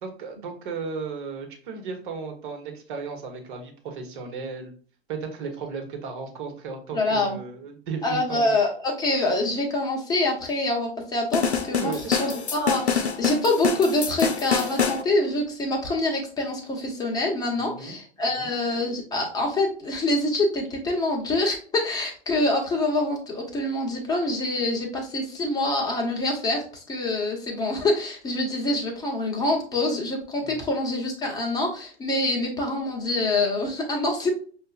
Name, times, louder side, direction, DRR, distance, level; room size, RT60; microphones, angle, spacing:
voice 1, 0.0-4.7 5.1-8.5 11.8-12.2 17.6-17.9 18.4-18.5 30.4-30.6, right 5 dB, 50° right, 3 dB, 1.3 m, -35 dB
voice 2, 6.9-7.4 8.0-34.3, left 2 dB, 10° left, -1 dB, 1.1 m, -25 dB
sound 1, 11.3-15.0, left 6 dB, 85° left, 0.6 m, -26 dB
6.6 x 2.5 x 2.5 m, 0.43 s
figure-of-eight pair, 95°, 32 cm